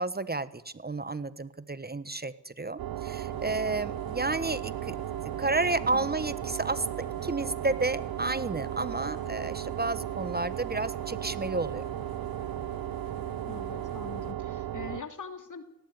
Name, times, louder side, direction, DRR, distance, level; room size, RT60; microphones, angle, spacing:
voice 1, 0.0-4.9 5.2-11.9, right 3 dB, 25° right, 15 dB, 1.3 m, -31 dB
sound 1, 2.8-15.0, right 12 dB, 70° right, 0.8 m, -35 dB
sound 2, 3.3-14.3, left 9 dB, 70° left, 1.4 m, -51 dB
voice 2, 13.4-15.6, left 5 dB, 55° left, 7 dB, 3.2 m, -42 dB
18.0 x 15.5 x 9.5 m, 0.84 s
supercardioid pair, 40°, 37 cm